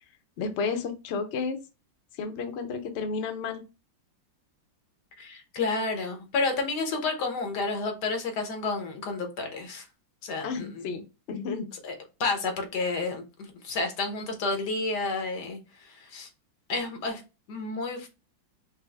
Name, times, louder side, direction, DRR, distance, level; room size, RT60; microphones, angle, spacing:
voice 1, 0.4-1.6 2.2-3.6 10.4-11.7, left 5 dB, 90° left, 0.5 m, -32 dB
voice 2, 5.2-9.8 10.2-10.7 11.8-11.9 12.2-16.3 16.7-17.2 17.5-18.2, left 3 dB, 65° left, 1.5 m, -30 dB
5.1 x 2.1 x 3.3 m
omnidirectional pair, 2.0 m